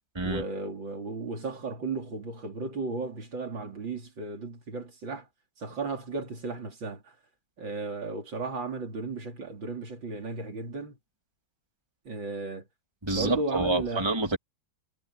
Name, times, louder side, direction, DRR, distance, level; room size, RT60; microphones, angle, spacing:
voice 1, 0.2-5.3 5.6-7.1 7.6-11.0 12.1-12.7 13.1-14.1, right 3 dB, 80° right, 4.4 m, -35 dB
voice 2, 13.0-14.4, right 2 dB, 15° right, 2.8 m, -28 dB
omnidirectional pair, 2.0 m